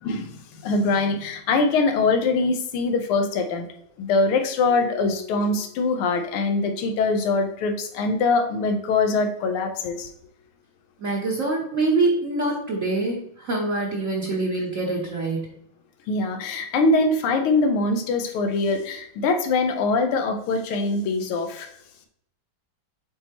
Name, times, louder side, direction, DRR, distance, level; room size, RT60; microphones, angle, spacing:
voice 1, 0.0-3.7 4.0-10.1 16.1-21.7, left 3 dB, 85° left, 6 dB, 1.7 m, -23 dB
voice 2, 11.0-15.6, right 3 dB, 45° right, -3 dB, 1.1 m, -25 dB
7.9 x 4.1 x 2.9 m, 0.72 s
omnidirectional pair, 2.3 m